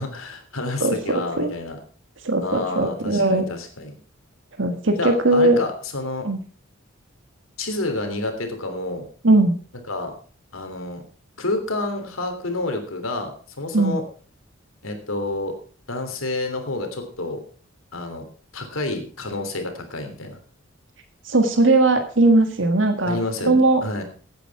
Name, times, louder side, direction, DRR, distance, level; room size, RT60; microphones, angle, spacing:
voice 1, 0.0-1.8 2.4-3.9 5.0-6.3 7.6-9.0 9.9-10.1 10.5-11.0 11.4-14.0 14.8-15.6 15.9-17.4 17.9-18.2 18.5-20.4 23.0-24.0, left 2 dB, 90° left, 6 dB, 3.2 m, -29 dB
voice 2, 2.2-3.4 4.6-5.6 6.2-6.4 9.2-9.5 13.7-14.0 21.3-23.2 23.5-23.8, right 2 dB, 65° right, 6 dB, 1.7 m, -18 dB
15.5 x 9.2 x 4.8 m, 0.41 s
head